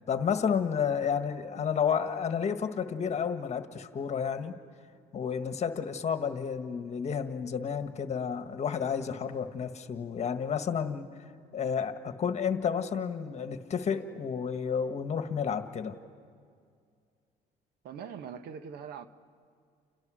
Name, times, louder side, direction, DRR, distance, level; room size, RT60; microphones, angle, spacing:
voice 1, 0.0-4.5 5.1-11.1 11.5-16.0, left 7 dB, 40° left, 1.6 m, -31 dB
voice 2, 17.8-19.1, right 7 dB, 70° right, 1.3 m, -42 dB
29.5 x 29.5 x 6.4 m
cardioid pair, 110°, 17 cm